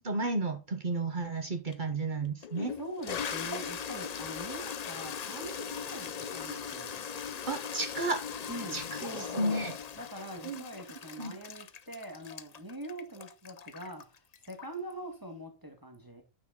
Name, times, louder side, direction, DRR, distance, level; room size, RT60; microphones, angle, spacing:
voice 1, 0.0-2.7 7.5-8.2 8.7-9.7 10.4-10.6 11.2-11.3, right 2 dB, 40° right, 1.2 m, -32 dB
Toilet flush, 1.7-1.8 2.4-14.9, left 7 dB, 50° left, 0.5 m, -39 dB
voice 2, 2.8-7.0 8.5-9.7 10.0-14.2 14.4-16.2, right 1 dB, 15° right, 1.6 m, -43 dB
9.2 x 6.2 x 3.8 m
omnidirectional pair, 1.3 m